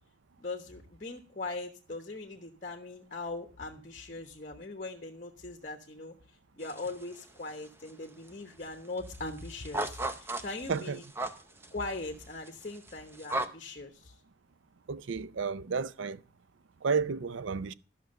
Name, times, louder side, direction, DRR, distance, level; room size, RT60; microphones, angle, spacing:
voice 1, 0.4-11.1 11.7-14.2, left 3 dB, 40° left, 1.0 m, -40 dB
sound 1, 6.6-7.2 7.5-8.3 8.6-8.7 9.0-13.5, right 2 dB, 10° right, 0.6 m, -36 dB
voice 2, 14.9-16.2 16.8-17.7, right 5 dB, 80° right, 0.5 m, -31 dB
12.5 x 6.1 x 6.6 m
head